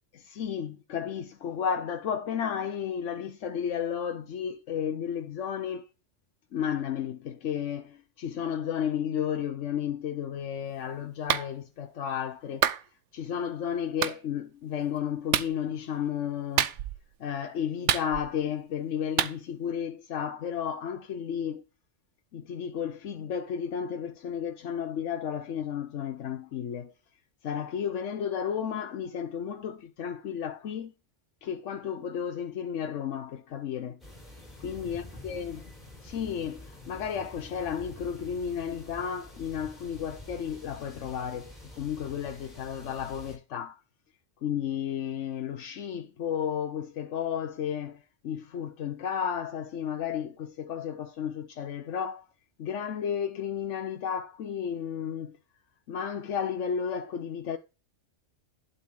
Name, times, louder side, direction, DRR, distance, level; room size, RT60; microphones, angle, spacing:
voice 1, 0.1-5.9 6.5-12.7 13.1-16.7 17.2-21.6 22.3-26.9 27.4-30.9 31.4-34.0 34.6-35.7 36.0-43.8 44.4-52.3 52.6-55.4 55.9-57.6, left 8 dB, 80° left, 1.1 m, -33 dB
Clapping, 11.3-11.5 12.6-12.8 14.0-14.2 15.3-15.5 16.6-17.0 17.9-18.4 19.2-19.4, right 10 dB, 80° right, 1.0 m, -26 dB
sound 1, 34.0-43.4, left 1 dB, ahead, 5.5 m, -47 dB
11.5 x 4.2 x 6.1 m
omnidirectional pair, 1.2 m